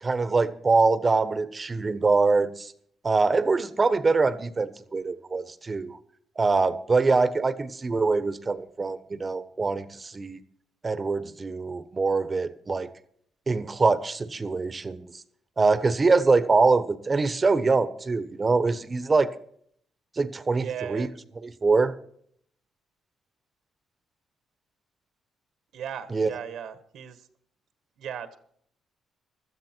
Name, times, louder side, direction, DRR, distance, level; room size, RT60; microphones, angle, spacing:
voice 1, 0.0-2.7 3.0-6.0 6.4-10.4 10.8-12.9 13.5-15.2 15.6-19.3 20.2-21.1 21.4-22.0 26.1-26.3, right 4 dB, 30° right, 1.2 m, -24 dB
voice 2, 20.5-21.1 25.7-27.2 28.0-28.4, right 8 dB, 75° right, 1.6 m, -36 dB
16.5 x 13.0 x 4.6 m
cardioid pair, 90°, 0 cm